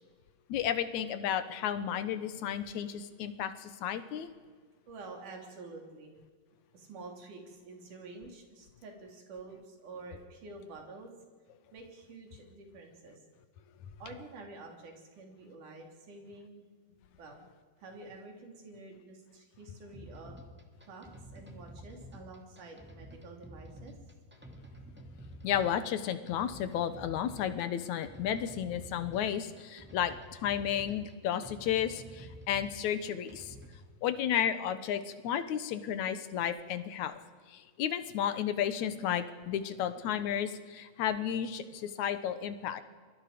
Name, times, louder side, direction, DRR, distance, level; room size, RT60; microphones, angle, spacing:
voice 1, 0.5-4.3 25.4-33.6 34.0-37.2 37.5-42.8, left 9 dB, 70° left, 11 dB, 2.0 m, -33 dB
voice 2, 4.9-6.2 6.7-11.1 11.7-13.2 14.0-16.7 17.2-17.4 17.8-20.4 20.9-23.9, right 3 dB, 60° right, 2 dB, 4.5 m, -48 dB
sound 1, 19.9-33.9, equal, 5° right, 1.4 m, -50 dB
28.0 x 22.0 x 5.1 m, 1.5 s
omnidirectional pair, 4.2 m